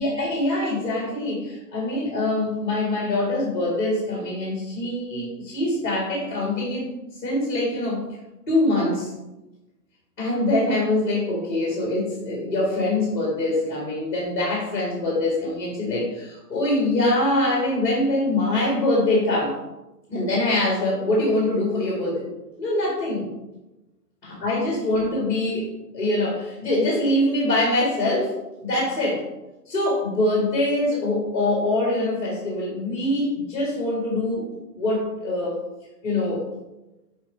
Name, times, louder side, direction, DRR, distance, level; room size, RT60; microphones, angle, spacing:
voice 1, 0.0-6.9 7.2-8.0 8.5-9.1 10.2-19.5 20.1-22.3 22.6-23.3 24.2-28.3 28.6-29.2 29.7-34.5 34.8-35.6 36.0-36.4, left 1 dB, 30° left, -3 dB, 1.7 m, -24 dB
6.2 x 4.1 x 5.2 m, 1.0 s
hypercardioid pair, 175°, 49 cm